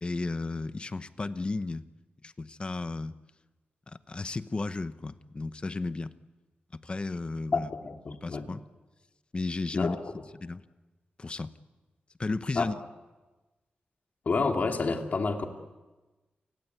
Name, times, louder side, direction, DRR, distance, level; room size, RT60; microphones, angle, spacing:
voice 1, 0.0-1.9 2.2-3.2 3.9-6.1 6.7-7.7 8.2-8.6 9.3-10.0 10.4-10.6 11.2-11.5 12.2-12.8, left 3 dB, 30° left, 13 dB, 0.9 m, -34 dB
voice 2, 7.5-8.4 9.7-10.0 12.6-12.7 14.3-15.5, left 4 dB, 50° left, 4 dB, 2.7 m, -29 dB
29.5 x 17.5 x 9.6 m, 1.2 s
wide cardioid pair, 125°, 4 cm